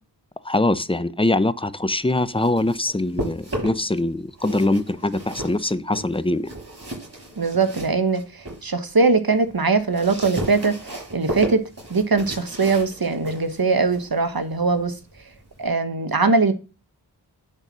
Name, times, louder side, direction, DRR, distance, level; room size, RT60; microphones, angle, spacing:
voice 1, 0.4-6.5, left 2 dB, 15° left, 0.6 m, -23 dB
sound 1, 2.2-4.0 4.3-8.7 9.1-15.7, right 1 dB, 35° right, 5.9 m, -34 dB
voice 2, 7.4-10.7 11.1-11.6 11.9-15.0 15.6-16.5, right 4 dB, 55° right, 1.3 m, -21 dB
10.5 x 4.1 x 6.2 m
wide cardioid pair, 45°, 43 cm